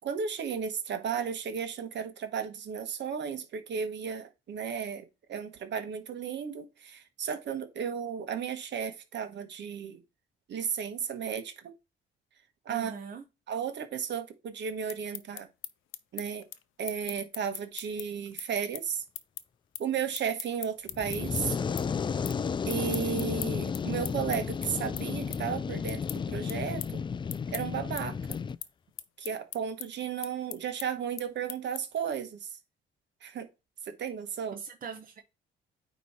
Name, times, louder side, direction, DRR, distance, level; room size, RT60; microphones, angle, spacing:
voice 1, 0.0-10.0 10.5-11.7 12.6-12.9 13.5-15.5 16.1-16.5 16.8-19.0 19.8-21.6 22.6-27.0 27.5-28.4 29.2-32.5 33.2-33.5 33.8-34.6, right 7 dB, 65° right, 1.3 m, -34 dB
voice 2, 12.7-13.2 34.5-35.2, right 6 dB, 45° right, 1.0 m, -41 dB
sound 1, 14.7-21.4 21.8-22.4 22.7-32.1, left 13 dB, 85° left, 0.6 m, -41 dB
Fire, 20.9-28.6, left 6 dB, 25° left, 0.3 m, -33 dB
9.2 x 3.1 x 4.2 m
cardioid pair, 90°, 20 cm